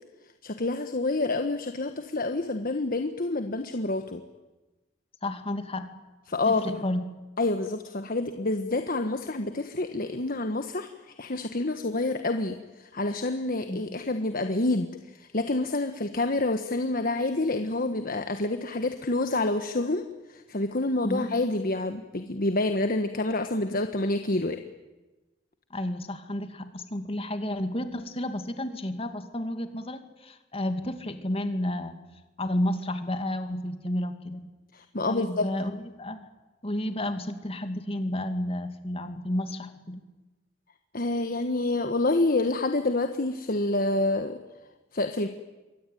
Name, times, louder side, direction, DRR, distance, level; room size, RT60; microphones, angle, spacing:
voice 1, 0.4-4.2 6.3-6.8 7.4-20.0 20.3-24.6 34.7-35.4 40.9-44.4 44.9-45.3, left 2 dB, 50° left, 7 dB, 1.3 m, -28 dB
voice 2, 5.2-5.9 6.5-7.0 13.7-13.8 21.0-21.3 25.7-32.0 32.4-34.4 35.1-36.2 36.6-40.0, left 1 dB, 30° left, 8 dB, 2.4 m, -31 dB
27.5 x 23.5 x 9.2 m, 1.2 s
head